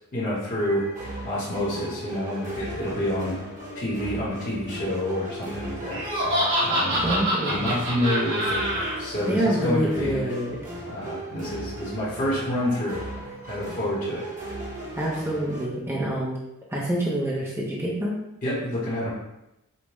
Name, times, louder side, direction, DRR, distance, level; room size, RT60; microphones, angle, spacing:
voice 1, 0.1-0.8 1.2-3.4 3.7-6.0 6.6-10.2 10.9-13.0 13.5-14.2 18.4-19.1, left 1 dB, 40° left, -9 dB, 1.0 m, -28 dB
sound 1, 0.6-15.7, right 1 dB, 35° right, 1.1 m, -37 dB
Laughter, 5.9-8.9, equal, 60° right, 1.4 m, -25 dB
voice 2, 7.0-7.7 9.2-10.6 15.0-16.4 16.7-18.2, right 1 dB, 10° right, -5 dB, 0.6 m, -26 dB
5.3 x 2.2 x 3.0 m, 0.89 s
head